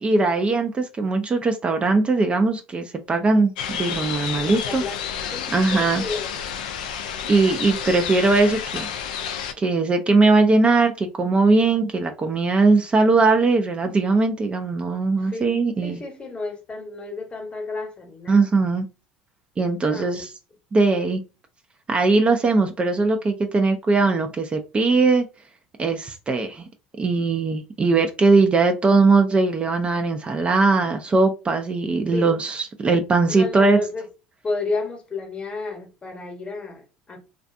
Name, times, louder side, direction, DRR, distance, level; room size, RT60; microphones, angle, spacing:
voice 1, 0.0-4.8 5.5-6.0 7.3-9.0 9.6-16.0 18.3-18.9 19.6-20.3 20.7-21.2 21.9-25.3 25.8-26.7 27.0-33.8, right 3 dB, 25° right, 0.4 m, -20 dB
sound 1, 3.6-9.5, left 8 dB, 80° left, 0.3 m, -30 dB
voice 2, 4.3-6.4 15.2-15.5 15.8-18.5 19.9-20.2 32.1-32.3 33.3-34.1 34.4-37.2, left 3 dB, 25° left, 0.9 m, -32 dB
2.4 x 2.3 x 2.4 m
hypercardioid pair, 75°, 4 cm